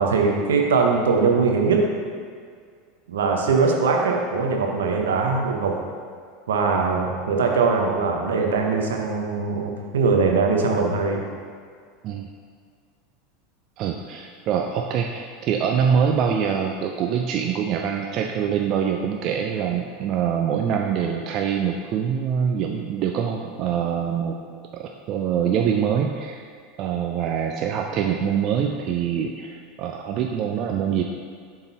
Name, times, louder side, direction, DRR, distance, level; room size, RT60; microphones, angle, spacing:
voice 1, 0.0-1.9 3.1-5.8 6.5-11.2, right 4 dB, 70° right, 1 dB, 0.8 m, -21 dB
voice 2, 13.8-24.4 24.8-26.4 26.8-31.0, right 7 dB, 45° right, 2 dB, 0.4 m, -24 dB
7.0 x 3.9 x 4.0 m, 2.1 s
figure-of-eight pair, 80°, 0 cm